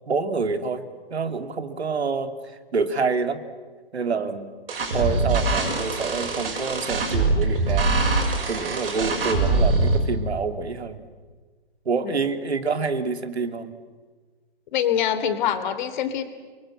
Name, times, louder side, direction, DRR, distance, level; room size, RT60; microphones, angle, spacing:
voice 1, 0.1-0.8 1.1-2.3 2.7-3.4 3.9-4.5 4.9-8.2 8.5-11.1 11.9-13.8, right 4 dB, 80° right, 10 dB, 2.3 m, -27 dB
sound 1, 4.7-10.0, right 3 dB, 60° right, 7.0 m, -23 dB
voice 2, 14.7-16.2, left 9 dB, 45° left, 10 dB, 3.0 m, -24 dB
29.5 x 23.0 x 7.6 m, 1.4 s
hypercardioid pair, 135°, 32 cm